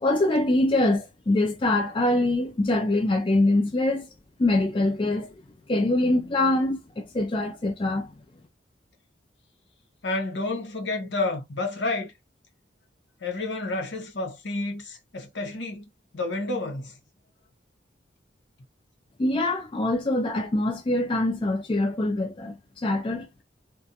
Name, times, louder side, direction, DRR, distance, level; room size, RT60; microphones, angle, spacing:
voice 1, 0.0-4.1 4.4-5.3 5.7-8.1 19.2-23.4, left 2 dB, 30° left, 0.4 m, -24 dB
voice 2, 10.0-12.1 13.2-16.9, left 2 dB, 75° left, 0.8 m, -30 dB
2.4 x 2.3 x 2.6 m
head